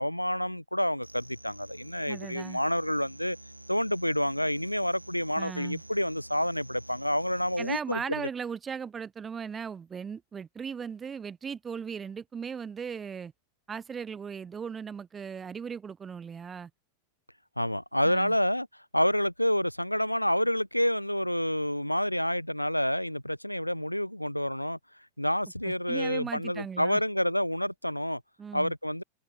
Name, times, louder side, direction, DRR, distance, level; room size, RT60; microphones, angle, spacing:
voice 1, 0.0-3.4 3.7-8.3 17.6-18.7 18.9-24.8 25.2-28.2 28.5-29.0, equal, 90° left, 0.4 m, -28 dB
sound 1, 1.0-7.8, right 1 dB, 85° right, 1.9 m, -49 dB
voice 2, 2.1-2.6 5.4-5.8 7.6-13.3 13.7-16.7 18.0-18.3 25.6-27.0 28.4-28.7, right 6 dB, 20° right, 0.4 m, -37 dB
figure-of-eight pair, 90°, 0 cm